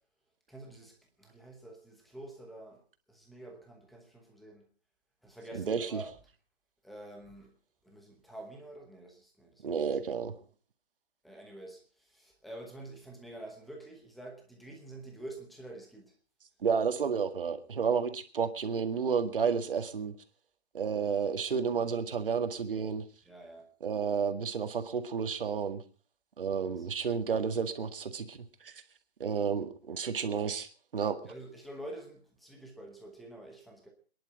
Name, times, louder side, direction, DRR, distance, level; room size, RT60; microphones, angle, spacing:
voice 1, 0.5-0.9 1.2-2.8 3.1-4.6 5.2-6.1 6.8-7.5 7.9-9.5 11.2-11.8 12.2-16.0 23.3-23.7 26.6-26.7 31.3-33.9, right 1 dB, ahead, 1.0 m, -47 dB
voice 2, 5.5-6.0 9.6-10.4 16.6-20.1 20.7-23.0 23.8-25.8 26.4-28.7 29.2-31.3, right 6 dB, 55° right, 2.0 m, -31 dB
26.5 x 11.0 x 4.9 m
hypercardioid pair, 170°, 32 cm